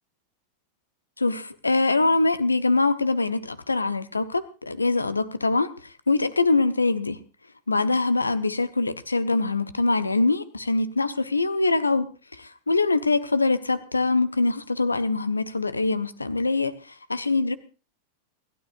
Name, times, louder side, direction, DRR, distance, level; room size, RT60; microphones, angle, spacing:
voice 1, 1.2-7.2 7.7-12.1 12.3-17.6, left 3 dB, 80° left, 0.9 m, -23 dB
27.5 x 12.5 x 2.6 m
figure-of-eight pair, 90°, 0 cm